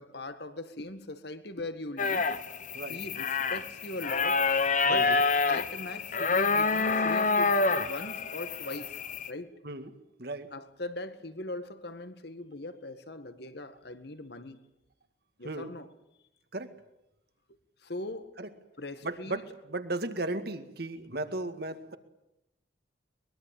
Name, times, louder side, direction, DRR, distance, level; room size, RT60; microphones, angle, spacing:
voice 1, 0.0-2.3 2.9-4.5 4.8-5.1 5.4-9.0 9.3-9.5 10.5-14.6 15.4-15.9 17.8-18.3 18.8-19.4, left 2 dB, 55° left, 1.9 m, -40 dB
sound 1, 2.0-9.3, left 4 dB, 40° left, 1.2 m, -27 dB
voice 2, 4.9-5.2 9.6-10.5 15.4-15.7 16.5-16.7 18.4-18.5 19.0-22.0, right 2 dB, 55° right, 2.1 m, -36 dB
23.0 x 22.0 x 9.0 m
head